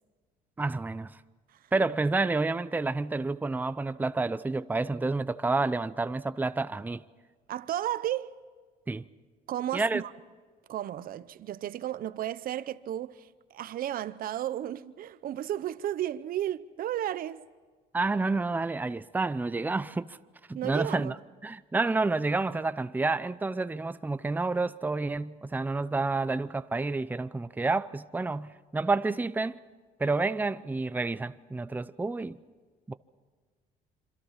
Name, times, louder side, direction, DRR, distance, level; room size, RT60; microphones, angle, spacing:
voice 1, 0.6-1.1 1.7-7.0 8.9-9.0 9.7-10.0 17.9-20.2 20.5-21.2 21.4-29.6 30.0-32.4 32.9-33.0, right 3 dB, 10° right, 0.6 m, -29 dB
voice 2, 7.5-8.3 9.5-10.1 10.7-17.5 20.5-21.1, right 12 dB, 60° right, 0.8 m, -33 dB
26.5 x 25.5 x 5.8 m
cardioid pair, 110°, 17 cm